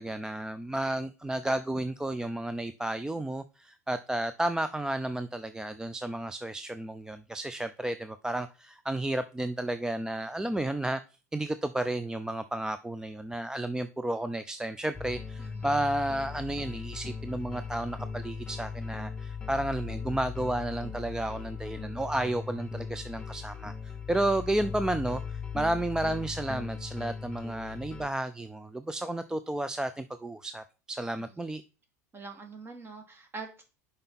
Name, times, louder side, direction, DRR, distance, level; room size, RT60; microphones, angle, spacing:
voice 1, 0.0-11.0 11.3-31.6, right 1 dB, 10° right, 0.5 m, -32 dB
sound 1, 14.9-28.1, left 6 dB, 10° left, 1.0 m, -39 dB
voice 2, 15.4-15.8 31.2-31.5 32.1-33.6, right 4 dB, 25° right, 2.1 m, -44 dB
6.6 x 5.4 x 4.2 m
figure-of-eight pair, 75°, 9 cm